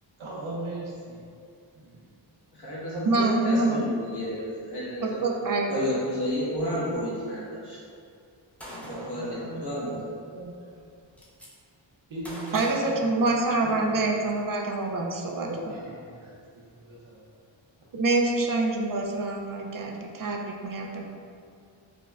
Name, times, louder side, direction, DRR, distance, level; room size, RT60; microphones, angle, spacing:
voice 1, 0.2-1.2 1.7-2.1 8.8-10.0 10.3-10.6 12.1-13.2 13.6-14.0 15.4-16.3 16.7-17.3, right 1 dB, 85° right, -6 dB, 0.8 m, -39 dB
voice 2, 2.5-5.2 5.7-7.8 8.6-10.2, equal, 55° left, -10 dB, 1.3 m, -31 dB
voice 3, 3.1-3.8 5.0-5.8 12.5-15.5 17.9-21.0, right 2 dB, 45° right, 0 dB, 0.5 m, -26 dB
Gunshot gunfire, 8.6-9.2 10.4-10.5 10.8-11.5 12.2-13.7, equal, 5° left, 0.6 m, -42 dB
5.0 x 2.1 x 2.4 m, 2.3 s
wide cardioid pair, 60°, 47 cm